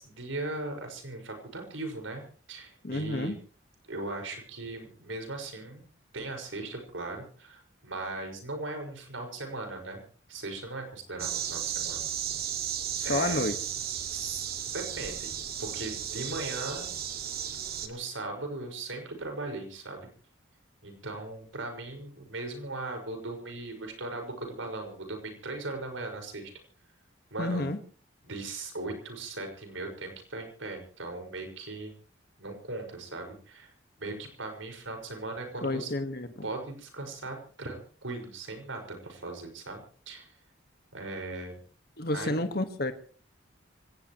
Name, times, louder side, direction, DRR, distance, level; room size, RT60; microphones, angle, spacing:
voice 1, 0.0-2.2 2.5-3.4 3.9-5.9 6.1-10.0 10.3-12.0 13.0-13.5 14.1-15.3 15.6-16.9 17.8-20.1 20.8-26.5 27.3-27.7 28.2-31.9 32.4-35.9 36.4-40.4 40.9-41.6 42.1-42.5, right 2 dB, 80° right, 3 dB, 5.7 m, -38 dB
voice 2, 2.8-3.3 13.0-13.6 27.4-27.8 35.6-36.5 42.0-42.9, left 2 dB, 50° left, 8 dB, 1.6 m, -30 dB
sound 1, 11.2-17.9, right 9 dB, 50° right, 2.2 m, -34 dB
25.0 x 18.0 x 3.1 m, 0.42 s
head